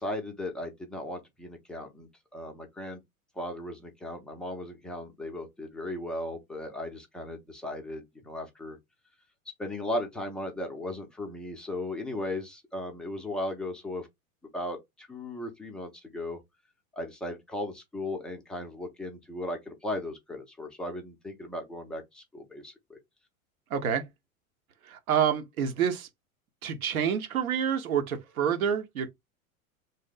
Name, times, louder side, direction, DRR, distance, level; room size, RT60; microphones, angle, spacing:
voice 1, 0.0-3.0 3.4-8.8 9.6-14.1 14.5-16.4 17.0-23.0, left 1 dB, ahead, 0.3 m, -36 dB
voice 2, 23.7-24.1 24.8-26.1 26.6-29.1, right 8 dB, 75° right, 0.8 m, -28 dB
2.7 x 2.0 x 3.7 m
figure-of-eight pair, 90°, 43 cm